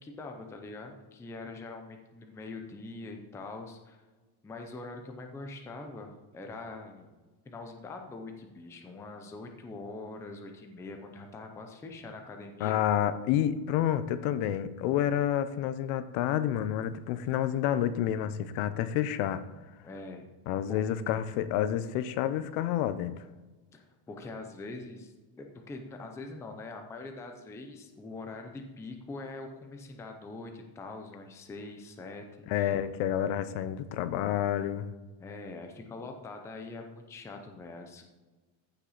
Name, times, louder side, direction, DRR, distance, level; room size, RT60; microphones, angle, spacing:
voice 1, 0.0-4.0 4.4-7.1 7.5-12.8 19.8-20.3 20.7-20.8 23.7-32.7 35.2-38.0, left 3 dB, 5° left, 0.4 m, -43 dB
voice 2, 12.6-19.5 20.5-23.2 32.5-34.9, left 10 dB, 80° left, 0.8 m, -29 dB
14.5 x 5.7 x 4.1 m
cardioid pair, 180°, 50 cm